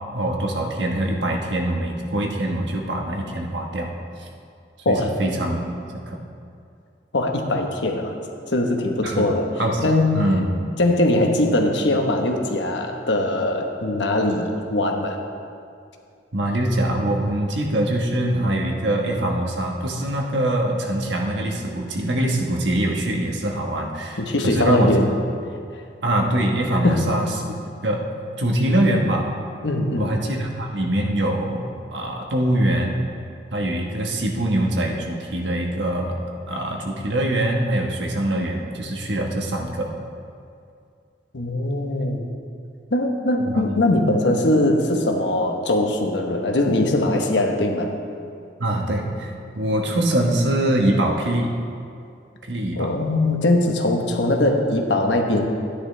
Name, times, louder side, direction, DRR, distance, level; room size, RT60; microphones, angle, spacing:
voice 1, 0.1-3.9 4.2-4.3 4.9-6.2 9.0-9.3 9.6-9.8 10.1-10.5 16.3-24.9 26.0-28.0 28.4-29.3 30.0-33.0 33.5-36.2 36.5-39.9 43.5-43.8 48.6-51.5 52.5-52.9, right 1 dB, 85° right, 0 dB, 1.3 m, -23 dB
voice 2, 7.1-8.1 8.5-9.5 9.8-10.2 10.8-15.2 24.2-25.1 26.8-27.1 29.6-30.1 41.3-42.2 42.9-47.9 52.8-55.5, left 1 dB, 85° left, 2 dB, 1.1 m, -21 dB
12.5 x 10.0 x 3.3 m, 2.4 s
head